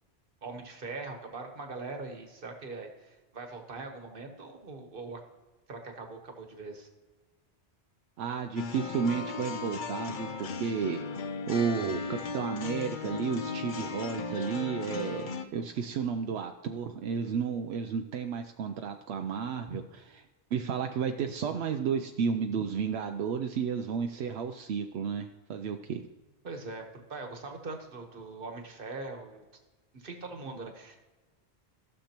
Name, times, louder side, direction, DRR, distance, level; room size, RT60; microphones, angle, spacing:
voice 1, 0.4-5.2 5.7-6.9 19.7-19.8 26.4-29.4 29.9-31.0, right 3 dB, 60° right, 4 dB, 1.4 m, -41 dB
voice 2, 8.2-11.0 11.5-19.8 20.5-26.0, right 6 dB, 85° right, 6 dB, 0.8 m, -32 dB
sound 1, 8.6-15.4, left 5 dB, 55° left, 0.7 m, -36 dB
15.0 x 6.5 x 2.9 m, 1.2 s
omnidirectional pair, 1.1 m